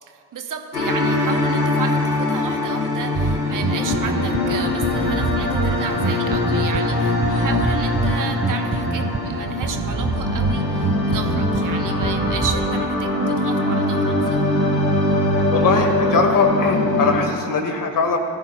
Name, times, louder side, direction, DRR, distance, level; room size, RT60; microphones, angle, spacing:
voice 1, 0.0-14.5, right 7 dB, 40° right, 5 dB, 1.3 m, -33 dB
sound 1, 0.7-17.2, left 2 dB, 85° left, 1.3 m, -22 dB
Bass guitar, 3.1-12.7, right 5 dB, 20° right, 0.9 m, -26 dB
voice 2, 15.5-18.2, left 4 dB, 40° left, 5 dB, 2.1 m, -20 dB
20.5 x 14.0 x 2.4 m, 2.2 s
figure-of-eight pair, 50°, 49 cm